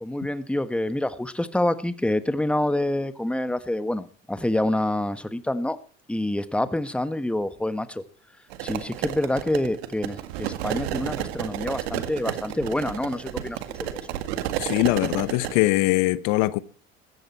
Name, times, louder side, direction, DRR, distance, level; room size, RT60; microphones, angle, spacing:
voice 1, 0.0-5.8 6.1-8.0 8.6-14.0, left 1 dB, 5° left, 1.4 m, -27 dB
sound 1, 8.5-15.6, right 12 dB, 80° right, 1.9 m, -31 dB
voice 2, 14.6-16.6, left 18 dB, 70° left, 1.0 m, -22 dB
16.0 x 13.5 x 4.3 m
hypercardioid pair, 85°, 31 cm